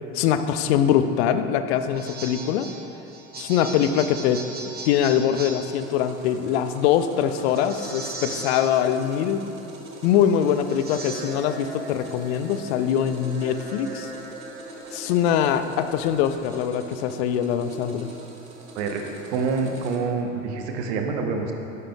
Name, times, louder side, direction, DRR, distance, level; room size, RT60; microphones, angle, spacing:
voice 1, 0.1-2.7 3.4-9.4 10.0-14.1 14.9-18.1, left 9 dB, 50° left, 10 dB, 0.6 m, -23 dB
sound 1, 1.7-16.5, right 3 dB, 25° right, 1.4 m, -39 dB
sound 2, 5.7-20.0, right 1 dB, 85° right, 1.0 m, -43 dB
voice 2, 19.3-21.5, right 4 dB, 55° right, 3 dB, 1.1 m, -26 dB
12.5 x 10.0 x 2.4 m, 2.9 s
figure-of-eight pair, 70°, 41 cm